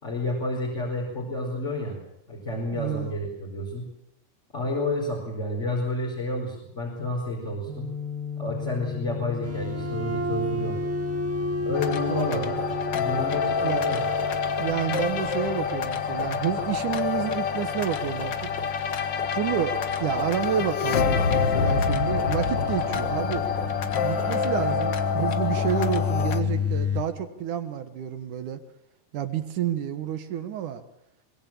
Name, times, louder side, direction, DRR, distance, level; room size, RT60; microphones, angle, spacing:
voice 1, 0.0-2.0 2.3-3.9 4.5-7.9 8.4-10.8 11.6-12.7 13.0-14.1, left 2 dB, 20° left, -3 dB, 5.1 m, -30 dB
voice 2, 2.7-3.1 12.1-12.5 13.6-13.8 14.6-18.5 19.3-23.5 24.0-28.6 29.1-30.8, right 9 dB, 65° right, 10 dB, 2.6 m, -29 dB
sound 1, 7.7-21.1, left 8 dB, 25° right, 2.9 m, -38 dB
sound 2, 9.4-27.0, left 3 dB, 10° right, 0.9 m, -32 dB
sound 3, 11.7-26.4, left 6 dB, 65° left, 1.1 m, -27 dB
23.5 x 21.0 x 7.4 m, 0.81 s
omnidirectional pair, 4.0 m